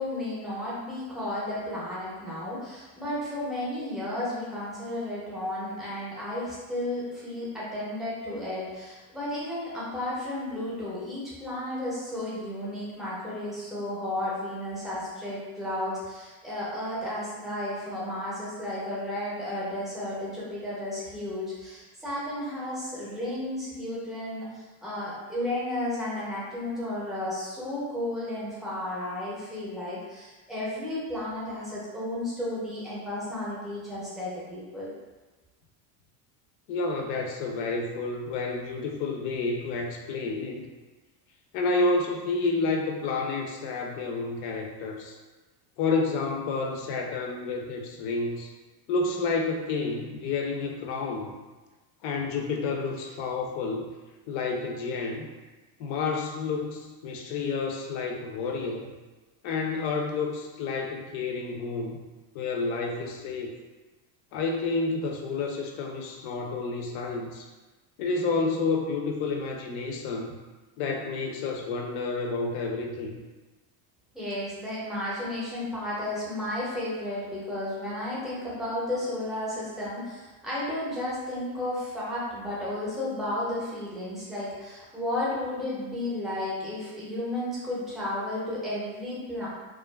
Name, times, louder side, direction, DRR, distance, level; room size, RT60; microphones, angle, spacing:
voice 1, 0.0-34.9 74.1-89.5, left 1 dB, ahead, -8 dB, 0.6 m, -33 dB
voice 2, 36.7-40.7 41.5-45.2 45.8-48.5 48.9-51.3 52.0-53.9 54.3-55.3 55.8-58.8 59.4-62.0 62.3-63.5 64.3-67.5 68.0-70.3 70.8-73.2, left 3 dB, 65° left, 2 dB, 0.6 m, -30 dB
2.4 x 2.3 x 2.2 m, 1.2 s
cardioid pair, 140°, 46 cm